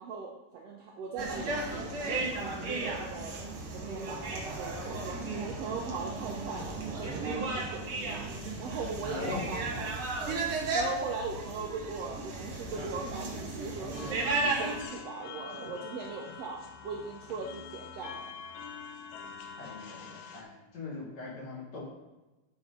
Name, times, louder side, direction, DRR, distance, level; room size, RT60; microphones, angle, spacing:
voice 1, 0.0-10.2 10.5-18.3, right 4 dB, 90° right, 0 dB, 1.4 m, -40 dB
sound 1, 1.2-14.8, right 3 dB, 50° right, 1.8 m, -34 dB
voice 2, 9.0-9.4 19.6-21.8, left 3 dB, 55° left, -5 dB, 3.2 m, -40 dB
sound 2, 13.9-20.4, left 6 dB, 80° left, 2.2 m, -45 dB
8.2 x 5.3 x 3.9 m, 1.0 s
omnidirectional pair, 3.8 m